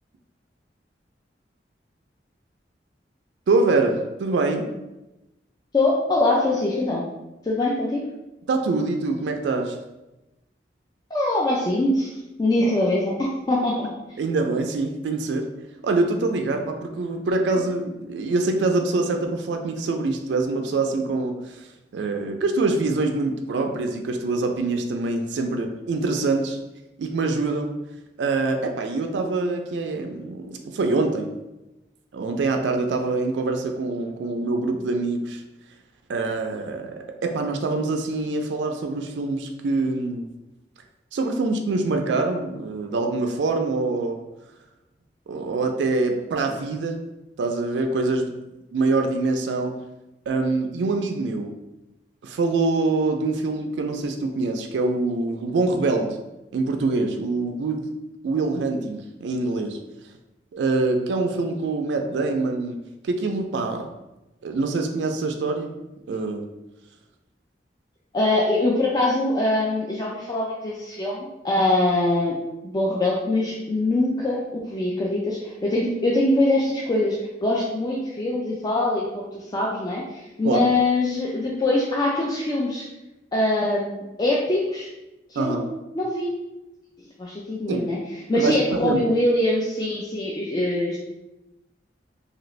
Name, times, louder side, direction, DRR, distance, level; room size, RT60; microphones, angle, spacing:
voice 1, 3.5-4.7 8.5-9.8 14.2-15.4 15.8-21.6 21.9-26.6 27.0-27.7 28.2-31.3 32.1-35.4 36.1-40.3 41.1-44.2 45.3-47.0 47.4-48.3 48.7-49.7 50.3-51.6 52.2-56.2 56.5-57.9 58.2-59.8 60.5-62.8 63.0-63.9 64.4-65.8 66.1-66.5 80.4-80.7 85.4-85.6 87.7-87.8 88.3-88.6 88.8-89.0, right 3 dB, 85° right, 4 dB, 0.3 m, -24 dB
voice 2, 5.7-7.0 7.4-8.0 11.1-12.1 12.4-13.1 13.5-14.2 68.1-72.4 72.6-82.9 83.3-84.9 85.3-85.6 85.9-86.3 87.2-88.0 88.3-91.0, left 2 dB, 20° left, -4 dB, 0.3 m, -23 dB
2.8 x 2.5 x 3.1 m, 0.98 s
head